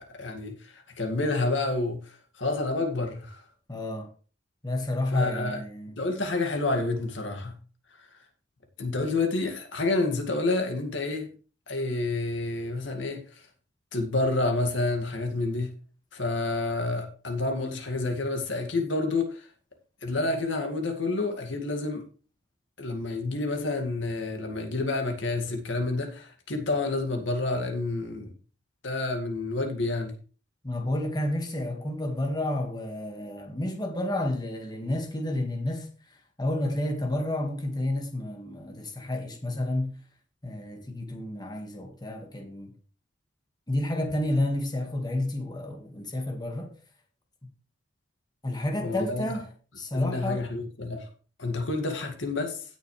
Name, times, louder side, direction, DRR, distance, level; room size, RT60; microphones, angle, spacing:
voice 1, 0.0-3.4 5.1-5.6 6.0-7.6 8.0-8.1 8.8-11.3 11.7-13.4 13.9-15.7 16.1-19.5 20.0-22.0 22.8-28.3 28.8-30.2 48.8-49.2 49.9-51.1 51.4-52.6, left 2 dB, 85° left, 2.2 m, -29 dB
voice 2, 3.7-4.1 4.6-5.9 30.6-35.9 36.4-40.0 40.4-42.7 43.7-46.7 48.4-49.5 49.8-50.4, left 1 dB, 20° left, 1.8 m, -30 dB
16.5 x 6.6 x 3.3 m
head